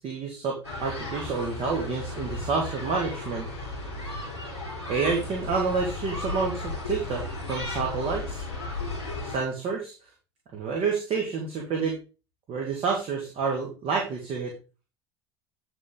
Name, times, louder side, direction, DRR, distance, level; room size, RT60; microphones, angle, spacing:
voice 1, 0.0-3.5 4.9-8.4 9.2-9.9 10.5-11.9 12.5-14.5, right 5 dB, 45° right, -1 dB, 2.6 m, -29 dB
sound 1, 0.6-9.4, left 2 dB, 90° right, 3.9 m, -35 dB
9.4 x 5.3 x 4.0 m, 0.31 s
figure-of-eight pair, 70°, 14 cm